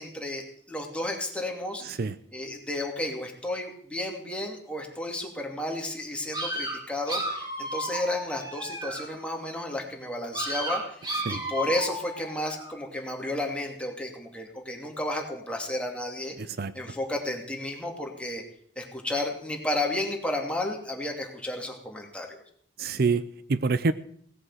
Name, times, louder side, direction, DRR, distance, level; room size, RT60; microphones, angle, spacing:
voice 1, 0.0-1.8 2.3-10.8 11.3-16.4 16.7-18.4 18.8-22.4, left 1 dB, 5° left, 0 dB, 2.7 m, -32 dB
voice 2, 1.8-2.1 11.3-11.4 16.4-16.7 22.8-23.9, right 4 dB, 60° right, 15 dB, 0.6 m, -26 dB
sound 1, 6.3-9.2 10.3-12.8, right 1 dB, 25° right, 4.9 m, -33 dB
17.5 x 8.0 x 7.5 m, 0.62 s
head